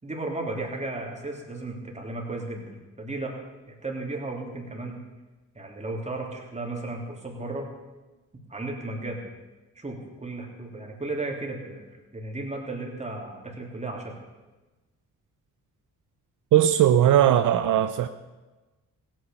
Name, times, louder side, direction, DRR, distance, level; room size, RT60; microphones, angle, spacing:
voice 1, 0.0-3.4 3.8-5.0 5.5-7.7 8.5-9.2 9.7-14.2, right 2 dB, 20° right, 0 dB, 3.2 m, -34 dB
voice 2, 16.5-18.1, right 11 dB, 75° right, 10 dB, 0.7 m, -19 dB
16.5 x 9.4 x 7.0 m, 1.2 s
cardioid pair, 95°, 31 cm